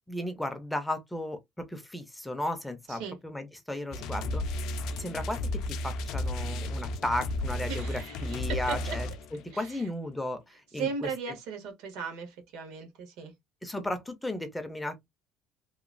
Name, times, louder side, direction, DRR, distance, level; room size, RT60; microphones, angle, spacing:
voice 1, 0.1-4.4 5.0-5.4 5.8-9.1 9.6-11.1 13.6-15.0, left 1 dB, 5° left, 0.4 m, -35 dB
sound 1, 3.9-9.5, left 1 dB, 65° left, 0.4 m, -33 dB
voice 2, 7.7-9.0 9.5-9.9 10.7-13.3, right 5 dB, 85° right, 1.4 m, -37 dB
2.9 x 2.2 x 2.4 m
cardioid pair, 170°, 0 cm